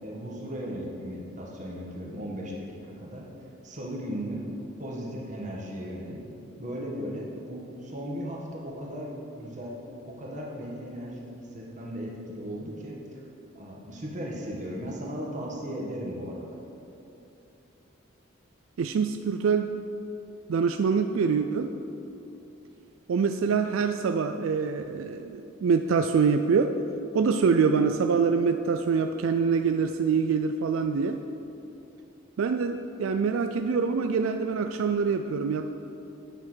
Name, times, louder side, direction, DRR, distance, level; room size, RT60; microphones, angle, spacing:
voice 1, 0.0-3.2 3.6-4.5 4.8-6.2 6.6-9.8 10.0-13.2 13.5-16.6, equal, 35° right, -2 dB, 1.5 m, -36 dB
voice 2, 18.8-19.7 20.5-21.7 23.1-26.8 27.1-31.2 32.4-35.7, right 5 dB, 80° right, 7 dB, 0.4 m, -25 dB
9.2 x 5.8 x 6.2 m, 2.9 s
head